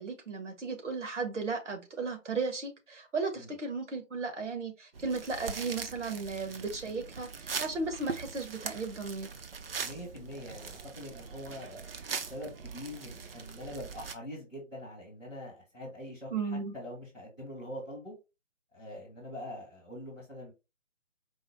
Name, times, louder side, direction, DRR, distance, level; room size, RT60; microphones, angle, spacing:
voice 1, 0.0-9.3 16.3-16.7, right 4 dB, 65° right, 1.6 m, -35 dB
sound 1, 4.9-14.1, right 5 dB, 50° right, 0.7 m, -41 dB
voice 2, 9.8-11.8 12.3-16.3 16.7-18.1 18.7-20.5, left 1 dB, 5° right, 0.6 m, -43 dB
4.7 x 2.1 x 4.0 m
figure-of-eight pair, 150°, 38 cm